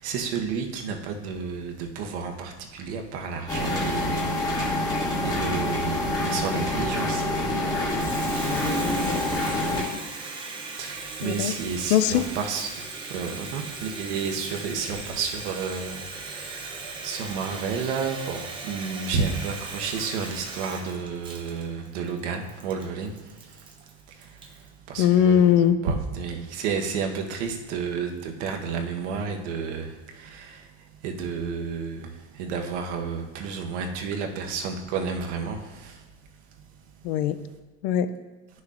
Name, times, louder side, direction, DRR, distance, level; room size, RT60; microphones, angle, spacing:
voice 1, 0.0-4.2 4.7-7.9 10.8-12.8 13.1-23.7 24.1-25.5 25.8-30.7 31.0-36.1, right 5 dB, 80° right, 3 dB, 1.1 m, -31 dB
sound 1, 3.5-9.8, left 1 dB, 10° left, 1.2 m, -26 dB
Water tap faucet, 7.7-24.7, right 3 dB, 15° right, 0.5 m, -37 dB
voice 2, 8.4-9.2 9.7-10.0 11.2-11.5 11.9-12.3 25.0-25.8 37.0-37.4 37.8-38.1, left 9 dB, 55° left, 12 dB, 0.4 m, -22 dB
10.5 x 6.3 x 2.5 m, 1.3 s
cardioid pair, 170°, 35 cm